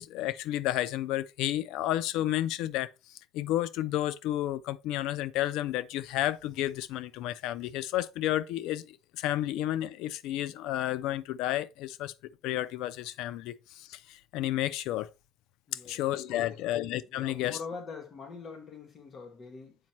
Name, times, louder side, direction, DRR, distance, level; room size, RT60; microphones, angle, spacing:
voice 1, 0.0-2.9 3.3-12.1 12.4-15.1 15.9-17.6, left 14 dB, 85° left, 0.4 m, -31 dB
voice 2, 15.7-16.0 16.3-16.6 17.1-19.8, left 4 dB, 45° left, 1.7 m, -44 dB
7.3 x 5.2 x 3.0 m
cardioid pair, 115°, 0 cm